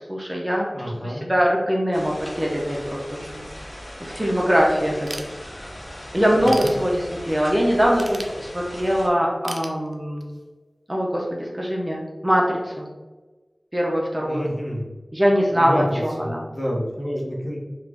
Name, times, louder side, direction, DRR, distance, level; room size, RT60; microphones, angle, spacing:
voice 1, 0.0-3.5 4.0-5.1 5.5-5.7 6.1-10.2 10.9-12.9 13.7-14.5 15.1-16.4, equal, 25° right, -2 dB, 0.6 m, -22 dB
voice 2, 0.7-1.3 6.3-6.8 14.2-14.9 15.5-17.6, equal, 20° left, -3 dB, 0.9 m, -29 dB
sound 1, 1.9-9.1, equal, 60° left, 1.2 m, -39 dB
Ratchet pawl / Tools, 5.1-5.9 6.2-7.4 7.9-8.9 9.4-10.4, right 2 dB, 75° right, 0.4 m, -37 dB
3.3 x 2.4 x 3.4 m, 1.3 s
wide cardioid pair, 55°, 0 cm